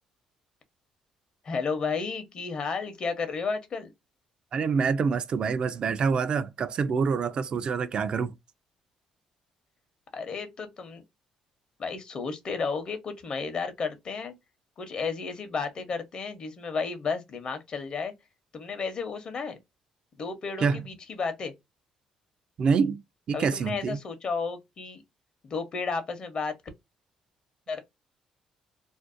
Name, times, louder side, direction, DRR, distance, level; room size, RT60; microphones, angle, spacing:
voice 1, 1.4-3.9 10.1-11.0 11.8-14.3 14.8-18.1 18.5-19.6 20.2-21.5 23.3-25.0 25.4-26.5 27.7-27.8, left 5 dB, 45° left, 0.8 m, -32 dB
voice 2, 4.5-8.3 20.6-20.8 22.6-23.0 23.3-24.0, right 5 dB, 50° right, 0.3 m, -26 dB
2.5 x 2.1 x 2.4 m
cardioid pair, 90°, 2 cm